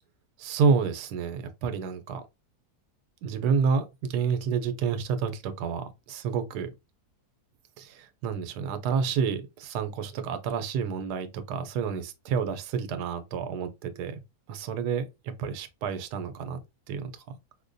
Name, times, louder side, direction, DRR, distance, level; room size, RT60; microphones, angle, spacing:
voice 1, 0.4-2.2 3.2-6.7 7.8-14.2 14.5-16.6 16.9-17.4, right 6 dB, 85° right, 1.2 m, -29 dB
4.8 x 2.2 x 2.5 m
omnidirectional pair, 1.7 m